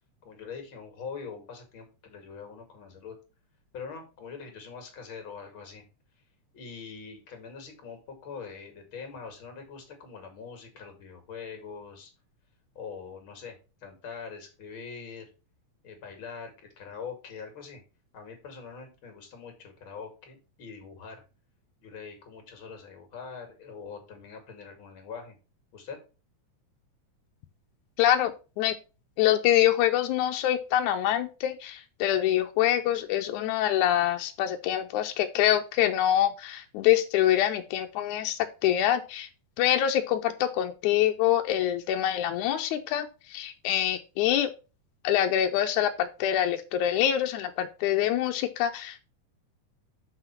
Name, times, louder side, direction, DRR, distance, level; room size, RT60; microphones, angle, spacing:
voice 1, 0.2-3.2 3.7-5.8 6.5-12.1 12.7-13.6 13.8-15.3 15.8-17.8 18.1-21.2 21.8-25.4 25.7-26.0, left 5 dB, 40° left, 5 dB, 2.7 m, -43 dB
voice 2, 28.0-28.8 29.2-39.3 39.6-44.5 45.0-49.0, left 11 dB, 80° left, 5 dB, 2.0 m, -25 dB
6.0 x 5.8 x 5.7 m, 0.32 s
omnidirectional pair, 3.7 m